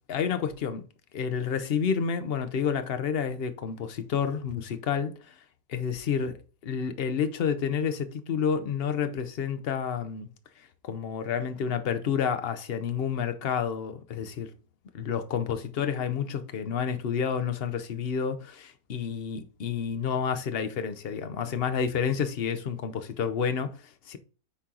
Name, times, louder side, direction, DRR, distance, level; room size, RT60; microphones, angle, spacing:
voice 1, 0.1-0.8 1.1-5.4 5.7-6.3 6.6-10.3 10.8-14.5 14.9-24.2, left 7 dB, 50° left, 0.8 m, -29 dB
8.5 x 4.4 x 3.8 m
omnidirectional pair, 1.8 m